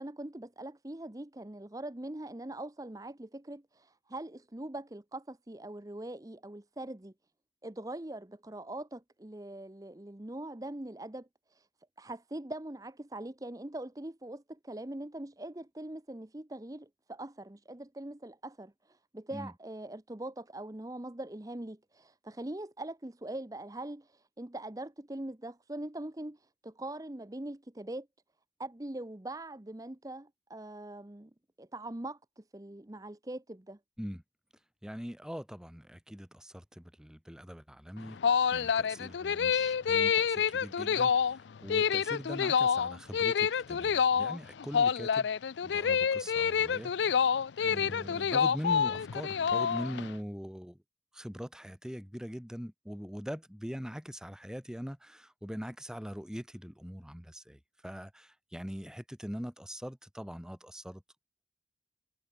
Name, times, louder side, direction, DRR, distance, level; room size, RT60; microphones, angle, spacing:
voice 1, 0.0-7.1 7.6-11.7 12.0-28.1 28.6-31.3 31.6-33.8, right 1 dB, 20° right, 0.8 m, -42 dB
voice 2, 34.8-38.2 38.5-45.3 45.6-47.2 47.6-50.8 51.1-61.0, equal, 5° right, 1.7 m, -42 dB
sound 1, 38.0-50.1, left 7 dB, 85° left, 0.5 m, -28 dB
head